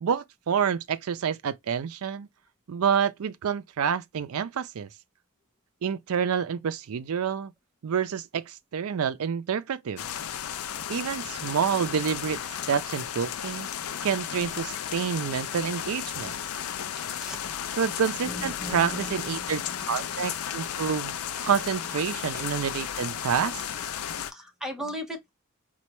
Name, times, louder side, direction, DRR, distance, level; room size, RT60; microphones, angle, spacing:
voice 1, 0.0-2.3 2.7-4.9 5.8-7.5 7.8-10.1 10.9-12.4 12.7-13.7 14.0-16.3 17.8-19.6 19.9-21.1 21.4-23.6, right 7 dB, 65° right, 0.4 m, -28 dB
sound 1, 10.0-24.3, left 9 dB, 70° left, 0.4 m, -34 dB
voice 2, 18.2-20.2 23.8-23.9 24.1-25.3, equal, ahead, 0.8 m, -38 dB
4.2 x 2.2 x 2.9 m
head